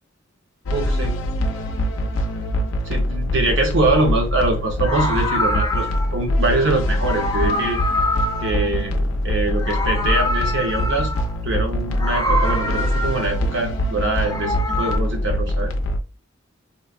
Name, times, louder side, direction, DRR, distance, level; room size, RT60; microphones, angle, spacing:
sound 1, 0.7-16.0, equal, 80° left, 0.4 m, -23 dB
voice 1, 0.7-1.2 2.9-7.8 8.4-11.1 11.4-15.7, right 2 dB, 70° right, 3 dB, 0.8 m, -23 dB
Meow, 3.9-4.2 4.7-6.2 6.9-9.2 9.5-11.4 11.9-13.5 14.0-15.0, left 1 dB, 20° left, 0.3 m, -25 dB
3.0 x 2.1 x 2.4 m, 0.33 s
head